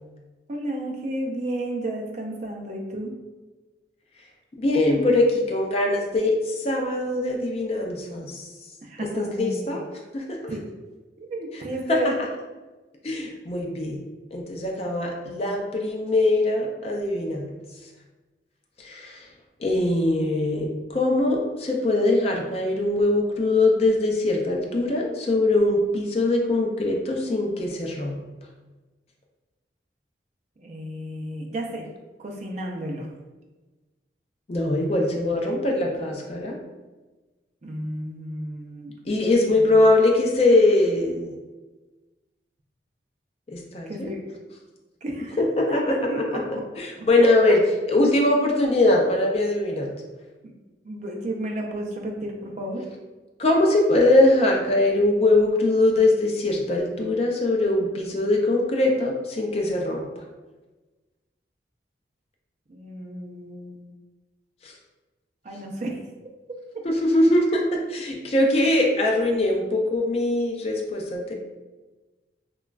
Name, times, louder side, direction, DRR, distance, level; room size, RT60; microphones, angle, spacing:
voice 1, 0.5-3.1 8.8-9.9 10.5-10.6 11.2-12.1 30.6-31.9 32.2-33.1 37.6-38.9 39.4-39.8 43.9-44.2 45.0-45.4 45.9-46.4 47.2-47.5 50.4-50.5 50.8-52.8 62.7-63.9 65.4-66.0, right 1 dB, 40° right, 0 dB, 0.4 m, -32 dB
voice 2, 4.6-8.4 9.2-9.8 10.1-10.4 11.9-12.0 13.0-14.0 14.3-17.5 18.8-19.3 19.6-28.2 34.5-36.6 39.1-41.3 43.5-44.1 45.4-46.4 46.8-47.6 47.9-49.9 53.4-60.1 64.6-64.7 66.8-71.3, left 2 dB, 35° left, 1 dB, 0.4 m, -22 dB
2.9 x 2.2 x 2.3 m, 1.2 s
head